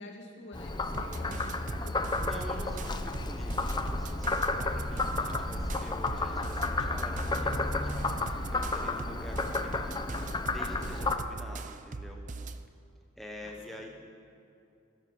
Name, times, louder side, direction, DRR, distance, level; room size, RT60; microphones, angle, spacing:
voice 1, 0.0-3.1 11.2-11.4 13.4-13.9, left 1 dB, 55° left, 0 dB, 2.5 m, -49 dB
Frog, 0.5-11.2, left 3 dB, 20° left, 0.6 m, -32 dB
sound 1, 0.9-12.7, right 3 dB, 35° right, 0.5 m, -40 dB
voice 2, 2.2-12.2 13.2-13.9, left 1 dB, ahead, 0 dB, 1.0 m, -46 dB
16.0 x 13.0 x 6.2 m, 2.6 s
head